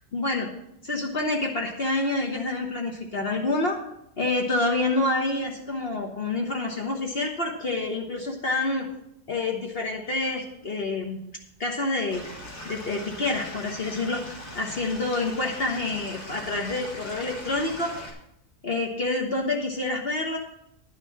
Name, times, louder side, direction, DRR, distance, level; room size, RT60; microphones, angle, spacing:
voice 1, 0.1-0.5 0.8-3.8 4.2-8.9 9.3-11.2 11.6-12.2 12.6-17.9 18.6-20.4, left 2 dB, 50° left, 1 dB, 1.4 m, -27 dB
Stream / Liquid, 12.1-18.1, left 1 dB, 85° left, 2.3 m, -40 dB
11.0 x 6.5 x 7.3 m, 0.79 s
omnidirectional pair, 1.4 m